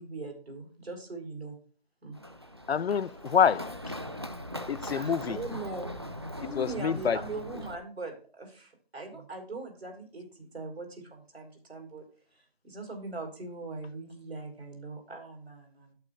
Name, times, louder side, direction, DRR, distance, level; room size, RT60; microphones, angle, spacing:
voice 1, 0.0-1.6 2.0-2.2 4.9-12.0 12.3-15.9, right 3 dB, 85° right, 4.5 m, -41 dB
Run, 2.1-7.7, equal, 25° right, 0.4 m, -40 dB
voice 2, 2.7-3.8 4.7-5.4 6.6-7.2, left 7 dB, 80° left, 0.6 m, -26 dB
11.5 x 8.0 x 2.6 m
figure-of-eight pair, 160°, 30 cm